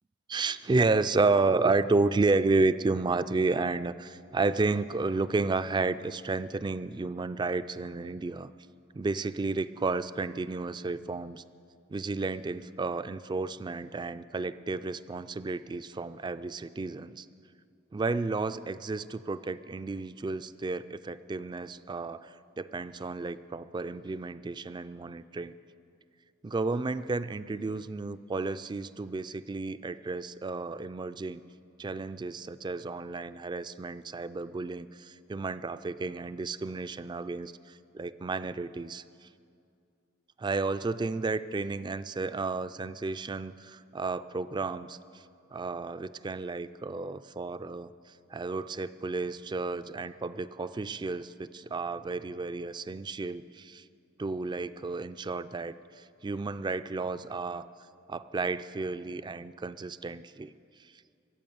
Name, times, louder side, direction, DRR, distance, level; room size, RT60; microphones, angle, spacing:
voice 1, 0.3-8.5 8.9-11.4 11.9-17.3 17.9-25.6 26.4-31.4 31.8-37.5 37.9-39.0 40.4-45.0 45.5-47.9 48.3-53.8 54.2-57.7 58.1-60.5, right 3 dB, 20° right, 13 dB, 0.3 m, -31 dB
23.5 x 8.5 x 7.0 m, 2.4 s
head